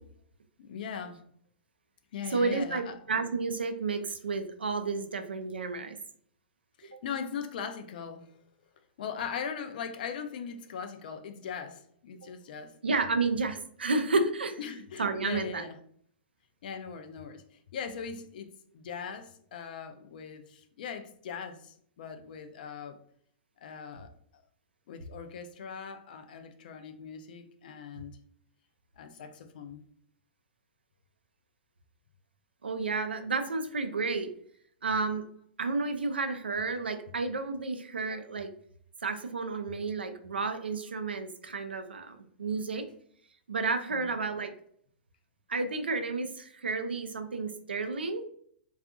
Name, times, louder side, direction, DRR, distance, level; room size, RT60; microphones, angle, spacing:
voice 1, 0.6-1.2 2.1-3.0 6.8-8.3 9.0-12.8 14.6-15.8 16.6-17.4 17.7-23.0 23.6-24.4 24.9-28.2 29.0-29.8 43.8-44.1, left 6 dB, 55° left, 0.4 m, -40 dB
voice 2, 2.3-6.0 12.8-14.6 15.0-15.6 32.6-34.3 34.8-35.2 35.6-38.5 39.0-42.9 43.5-44.5 45.5-48.2, right 3 dB, 80° right, 0.4 m, -31 dB
2.6 x 2.3 x 2.4 m
figure-of-eight pair, 105°, 6 cm